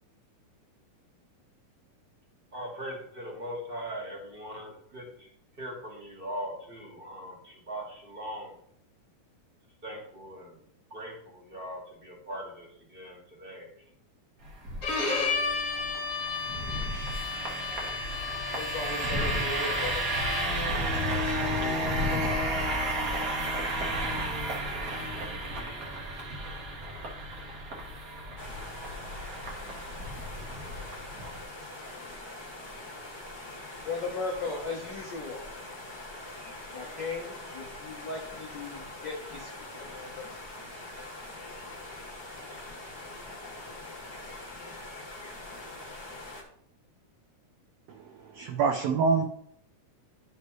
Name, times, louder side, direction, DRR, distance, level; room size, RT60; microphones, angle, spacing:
voice 1, 2.5-5.3 5.6-8.6 9.8-13.7 25.1-25.9, equal, 20° right, -2 dB, 1.7 m, -40 dB
sound 1, 14.4-31.4, right 1 dB, 55° right, 0.9 m, -32 dB
Bowed string instrument, 14.8-20.7, left 4 dB, 35° left, 1.4 m, -33 dB
voice 2, 18.5-20.0 21.0-22.5 33.8-35.5 36.7-40.3, left 3 dB, 75° left, -1 dB, 1.0 m, -38 dB
sound 2, 28.4-46.4, left 2 dB, 15° left, 1.1 m, -43 dB
voice 3, 47.9-49.2, right 5 dB, 80° right, 4 dB, 1.5 m, -26 dB
11.0 x 5.2 x 3.1 m, 0.66 s
omnidirectional pair, 3.6 m